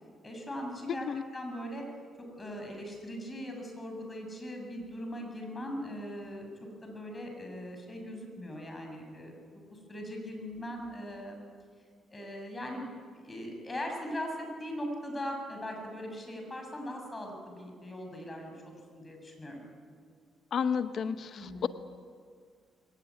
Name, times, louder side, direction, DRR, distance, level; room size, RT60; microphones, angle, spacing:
voice 1, 0.2-1.1 1.3-1.9 2.4-6.5 6.8-11.4 12.1-12.9 13.1-19.6 21.3-21.7, equal, 20° left, 2 dB, 7.1 m, -40 dB
voice 2, 20.5-21.7, left 7 dB, 60° left, 11 dB, 0.9 m, -31 dB
22.0 x 18.5 x 9.6 m, 2.1 s
cardioid pair, 90°, 0 cm